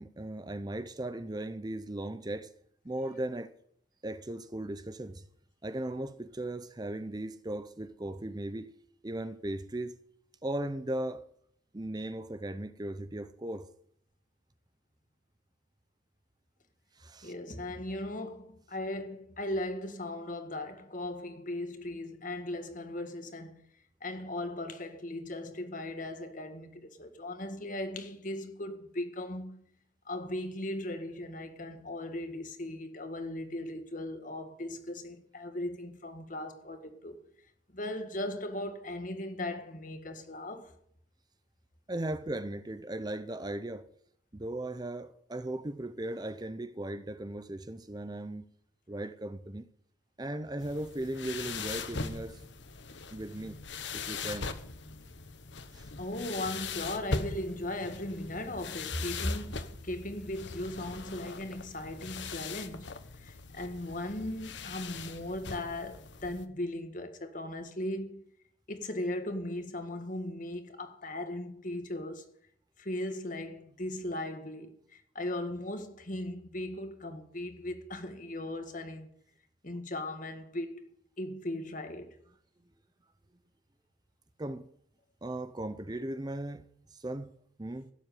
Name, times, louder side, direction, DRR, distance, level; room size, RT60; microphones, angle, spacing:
voice 1, 0.0-2.5 2.8-3.5 4.0-5.2 5.6-8.7 9.0-10.0 10.4-11.3 11.7-13.7 17.0-17.3 41.9-43.9 44.3-48.4 48.9-49.7 50.2-52.4 53.1-53.6 53.9-54.6 55.7-55.9 84.4-84.7 85.2-86.6 86.9-87.3 87.6-87.9, right 1 dB, 20° right, 0.6 m, -37 dB
voice 2, 17.2-23.6 24.0-29.6 30.1-37.2 37.7-40.7 56.0-68.2 68.7-72.3 72.8-79.1 79.6-80.9 81.2-82.2, left 1 dB, 40° left, 1.8 m, -38 dB
sound 1, 50.6-66.4, left 4 dB, 65° left, 1.2 m, -41 dB
17.0 x 7.8 x 9.3 m
head